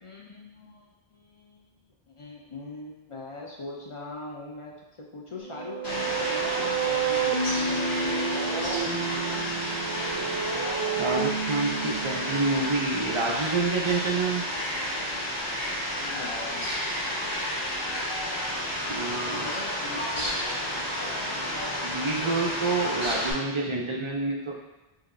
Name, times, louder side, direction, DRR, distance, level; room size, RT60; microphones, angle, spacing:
voice 1, 0.0-8.7 16.0-17.1 19.1-20.8, left 2 dB, 45° left, -2 dB, 0.4 m, -41 dB
sound 1, 5.4-13.2, right 6 dB, 70° right, 0.7 m, -30 dB
Fowl, 5.8-23.3, left 1 dB, 80° left, 1.4 m, -31 dB
voice 2, 11.0-14.4 18.9-19.5 21.8-24.6, right 3 dB, 45° right, -2 dB, 0.4 m, -28 dB
5.1 x 2.7 x 2.5 m, 1.0 s
omnidirectional pair, 1.0 m